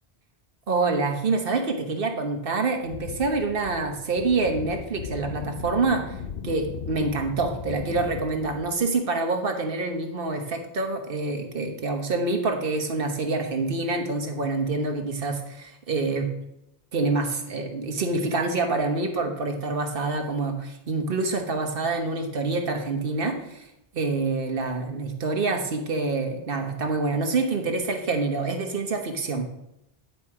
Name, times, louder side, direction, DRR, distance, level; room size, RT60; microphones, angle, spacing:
voice 1, 0.7-6.2 6.4-16.3 16.9-23.7 23.9-29.4, right 3 dB, 60° right, 4 dB, 1.3 m, -26 dB
sound 1, 2.8-8.8, left 7 dB, 70° left, 0.9 m, -37 dB
9.8 x 4.4 x 4.8 m, 0.83 s
omnidirectional pair, 1.1 m